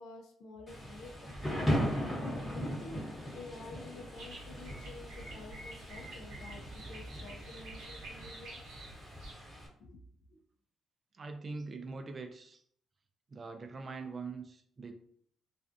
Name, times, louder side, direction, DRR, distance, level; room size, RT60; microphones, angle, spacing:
voice 1, 0.0-1.5 2.3-3.0 3.3-8.6 9.8-10.0 10.3-10.4, left 3 dB, 85° left, 3 dB, 0.4 m, -50 dB
Thunder / Rain, 0.7-9.7, equal, 15° left, 0.9 m, -38 dB
sound 1, 4.1-9.3, right 2 dB, 85° right, 0.9 m, -50 dB
voice 2, 11.1-12.6 13.3-14.9, right 4 dB, 40° right, 6 dB, 0.4 m, -43 dB
2.4 x 2.3 x 2.4 m, 0.62 s
cardioid pair, 90°, 0 cm